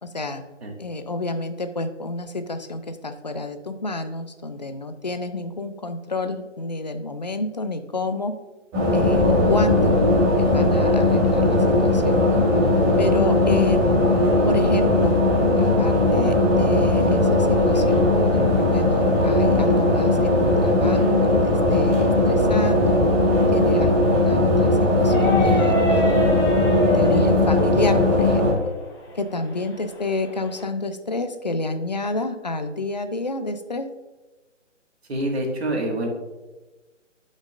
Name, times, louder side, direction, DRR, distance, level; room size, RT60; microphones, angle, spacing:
voice 1, 0.0-0.4 0.8-8.3 8.9-10.0 10.4-12.5 13.0-14.0 14.5-15.2 15.6-23.0 23.5-26.3 26.9-28.7 29.1-33.9, left 2 dB, 35° left, 9 dB, 0.4 m, -29 dB
sound 1, 8.7-28.5, left 1 dB, 15° right, 1.5 m, -18 dB
sound 2, 25.0-30.6, right 1 dB, 20° left, 1.1 m, -29 dB
voice 2, 35.1-36.1, right 1 dB, 55° right, 1 dB, 1.9 m, -26 dB
10.5 x 5.2 x 2.5 m, 1.2 s
figure-of-eight pair, 155°, 38 cm